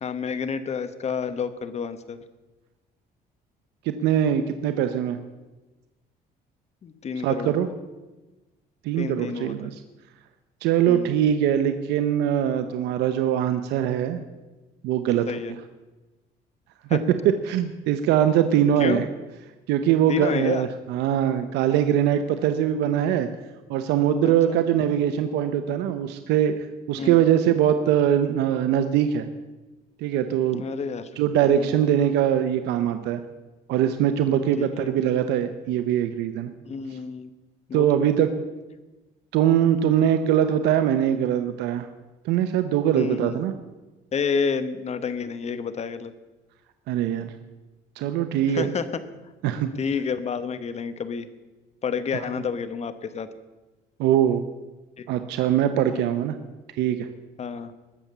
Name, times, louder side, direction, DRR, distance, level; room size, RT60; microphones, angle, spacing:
voice 1, 0.0-2.2 6.8-7.5 9.0-9.5 10.9-11.1 15.3-15.5 16.9-17.0 18.8-19.0 20.1-20.7 24.2-24.6 27.0-27.2 30.5-31.1 31.5-31.7 34.6-34.9 36.6-37.3 37.7-38.1 42.9-43.4 44.1-46.1 48.5-48.9 49.6-51.3 51.8-53.3 55.0-55.1 55.9-56.1 57.4-57.7, left 6 dB, 40° left, 12 dB, 1.2 m, -30 dB
voice 2, 3.9-5.2 7.2-7.7 8.8-9.8 10.6-14.2 14.8-15.3 16.9-17.0 17.5-19.1 19.7-23.3 23.7-26.5 26.9-29.3 30.0-30.6 31.2-33.2 33.7-36.5 37.7-38.3 39.3-41.9 42.2-43.5 46.9-47.3 48.0-48.7 49.4-49.7 52.1-52.2 54.0-54.4 55.1-56.3 56.8-57.1, right 10 dB, 90° right, 9 dB, 0.9 m, -22 dB
20.5 x 7.4 x 6.8 m, 1.1 s
cardioid pair, 110°, 17 cm